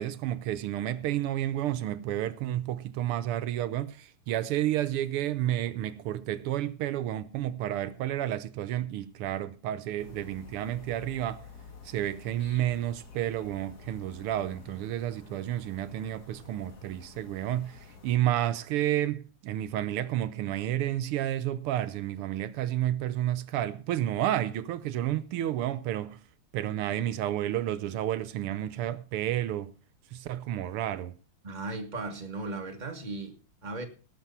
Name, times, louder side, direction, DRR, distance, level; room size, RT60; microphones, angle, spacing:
voice 1, 0.0-11.4 11.8-26.2 26.5-29.7 30.1-31.1, right 12 dB, 85° right, 1.7 m, -31 dB
sound 1, 10.0-18.2, left 4 dB, 45° left, 2.4 m, -50 dB
voice 2, 31.4-33.9, right 2 dB, 20° right, 1.8 m, -37 dB
18.0 x 6.8 x 5.5 m
omnidirectional pair, 2.4 m